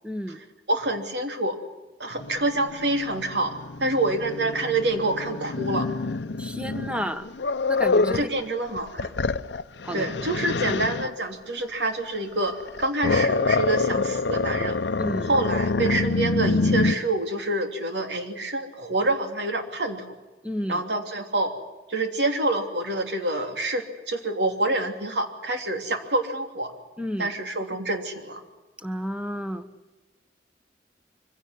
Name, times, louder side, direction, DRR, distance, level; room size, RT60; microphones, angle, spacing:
voice 1, 0.0-0.4 6.4-7.3 7.7-8.3 9.8-10.1 15.0-15.3 20.4-20.8 27.0-27.3 28.8-29.7, equal, 5° right, 10 dB, 1.4 m, -31 dB
voice 2, 0.7-1.6 2.0-3.5 3.8-5.9 8.1-9.1 9.9-14.8 15.3-20.1 20.7-21.5 21.9-26.7 27.2-28.4, right 2 dB, 75° right, 5 dB, 3.1 m, -27 dB
Growling, 2.2-8.3 8.8-11.1 12.5-16.9, left 3 dB, 85° left, 0.7 m, -26 dB
24.5 x 16.5 x 9.7 m, 1.2 s
head